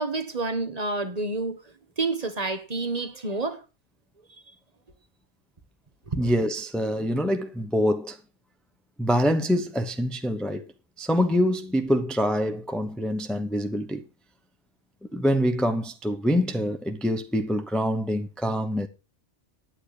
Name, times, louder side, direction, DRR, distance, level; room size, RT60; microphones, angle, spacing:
voice 1, 0.0-1.6 2.0-3.6 6.1-6.3, right 3 dB, 35° right, 1.4 m, -29 dB
voice 2, 6.1-8.2 9.0-10.6 11.0-14.0 15.1-18.9, equal, ahead, 0.8 m, -25 dB
9.8 x 9.6 x 4.9 m
omnidirectional pair, 1.2 m